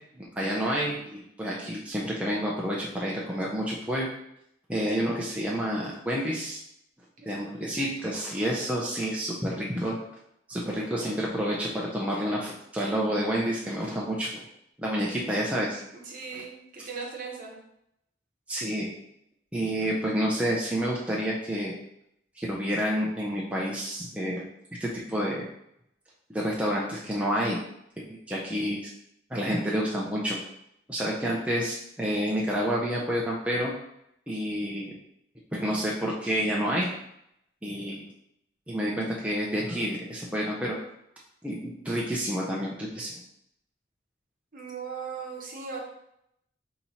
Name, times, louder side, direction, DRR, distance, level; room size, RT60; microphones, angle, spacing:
voice 1, 0.1-4.1 4.7-6.6 7.3-10.0 10.5-14.4 14.8-15.8 18.5-18.9 19.5-21.7 22.4-24.4 24.8-25.4 26.3-27.6 28.1-28.9 29.3-30.4 30.9-33.7 34.3-34.9 35.5-36.9 37.6-38.0 38.7-40.8 41.4-43.1, equal, 5° right, -4 dB, 0.5 m, -29 dB
voice 2, 15.9-17.6 44.5-45.8, right 5 dB, 45° right, -2 dB, 1.1 m, -38 dB
4.1 x 2.9 x 4.2 m, 0.76 s
head